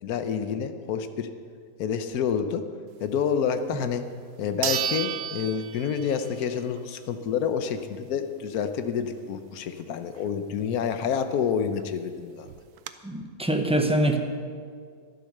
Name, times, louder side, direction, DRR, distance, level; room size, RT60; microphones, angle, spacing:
voice 1, 0.0-1.3 1.8-2.6 3.0-4.0 4.4-12.5, left 7 dB, 80° left, 8 dB, 1.3 m, -28 dB
sound 1, 3.8-3.9 4.6-6.4 6.8-6.9 11.5-11.6 11.8-11.9 12.5-12.9, right 10 dB, 85° right, 1.2 m, -31 dB
voice 2, 13.0-14.2, right 1 dB, 5° right, 4 dB, 0.8 m, -24 dB
12.0 x 12.0 x 6.6 m, 2.1 s
omnidirectional pair, 1.6 m